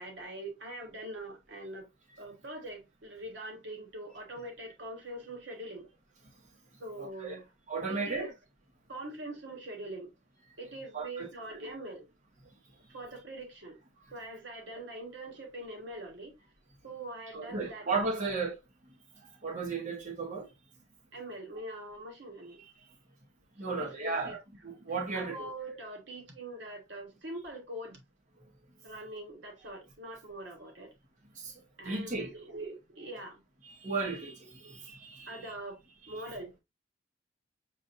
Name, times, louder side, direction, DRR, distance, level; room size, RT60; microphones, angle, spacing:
voice 1, 0.0-1.9 2.2-5.9 6.8-7.4 7.9-8.3 8.9-10.1 10.6-12.1 12.9-13.8 14.1-16.3 16.8-17.9 18.2-18.3 21.1-22.6 23.7-24.4 25.1-28.0 28.8-30.9 31.8-33.4 34.6-34.7 35.3-35.8 36.1-36.5, right 1 dB, 80° right, 1.5 m, -43 dB
voice 2, 7.0-7.4 7.7-8.3 10.9-11.3 11.6-11.7 17.3-18.6 19.4-20.5 23.6-25.5 31.4-31.5 31.8-32.3 33.6-35.4, right 4 dB, 45° right, 1.4 m, -35 dB
7.2 x 2.6 x 2.6 m
head